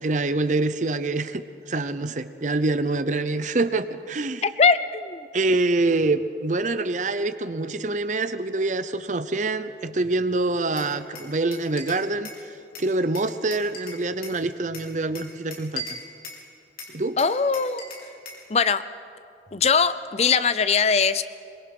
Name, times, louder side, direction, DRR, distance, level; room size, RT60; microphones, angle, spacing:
voice 1, 0.0-4.4 5.3-12.3 12.8-16.0 16.9-17.2, right 2 dB, 45° right, 12 dB, 0.7 m, -25 dB
voice 2, 4.4-5.3 17.2-17.8 18.5-18.8 19.5-21.2, left 5 dB, 35° left, 14 dB, 0.5 m, -21 dB
Glass, 10.8-12.4 12.7-14.4 14.7-16.4 16.8-18.5, left 2 dB, 55° left, 3.7 m, -39 dB
23.0 x 21.0 x 6.0 m, 2.5 s
head